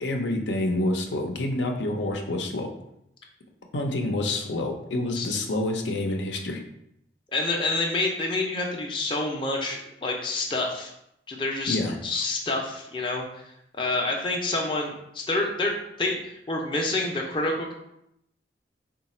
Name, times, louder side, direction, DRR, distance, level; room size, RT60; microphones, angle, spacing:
voice 1, 0.0-2.7 3.7-6.6 11.7-12.0, left 1 dB, 85° left, 3 dB, 0.6 m, -27 dB
voice 2, 7.3-10.9 11.3-11.8 12.0-13.5 13.8-17.7, left 2 dB, 25° left, 0 dB, 0.5 m, -28 dB
3.9 x 2.3 x 4.1 m, 0.79 s
head